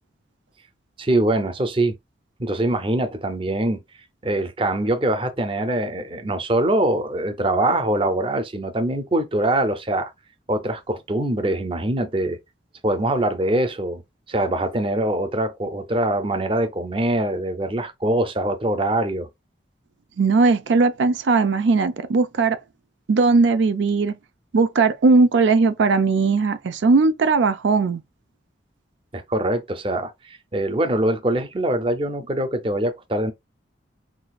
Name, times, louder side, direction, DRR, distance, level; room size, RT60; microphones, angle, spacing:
voice 1, 1.0-1.9 2.4-3.8 4.2-10.1 10.5-12.4 12.8-14.0 14.3-19.3 29.1-33.3, right 1 dB, 30° right, 0.6 m, -23 dB
voice 2, 20.2-22.6 23.1-24.1 24.5-28.0, right 4 dB, 75° right, 0.4 m, -18 dB
5.9 x 2.5 x 2.3 m
head